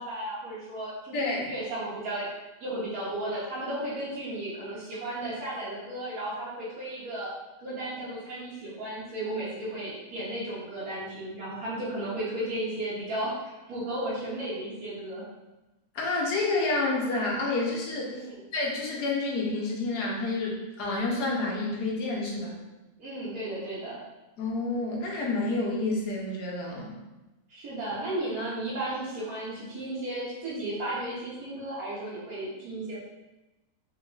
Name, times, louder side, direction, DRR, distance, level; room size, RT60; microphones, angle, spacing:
voice 1, 0.0-2.3 2.6-7.3 7.6-15.2 18.1-18.4 23.0-24.0 27.5-33.0, right 1 dB, 70° right, -9 dB, 1.4 m, -34 dB
voice 2, 1.1-1.5 15.9-18.1 18.5-22.5 24.4-26.9, left 2 dB, 90° left, -2 dB, 1.4 m, -29 dB
4.6 x 2.9 x 2.3 m, 1.0 s
omnidirectional pair, 1.7 m